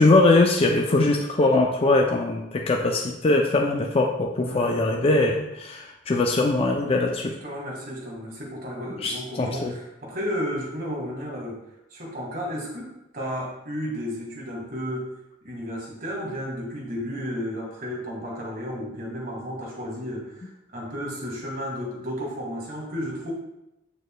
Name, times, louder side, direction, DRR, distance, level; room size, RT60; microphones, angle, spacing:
voice 1, 0.0-7.3 9.0-9.7, left 2 dB, 30° left, 1 dB, 0.4 m, -21 dB
voice 2, 4.4-5.2 7.4-11.6 11.9-15.1 15.4-23.3, equal, 45° right, -2 dB, 1.8 m, -33 dB
7.0 x 6.4 x 2.2 m, 0.88 s
head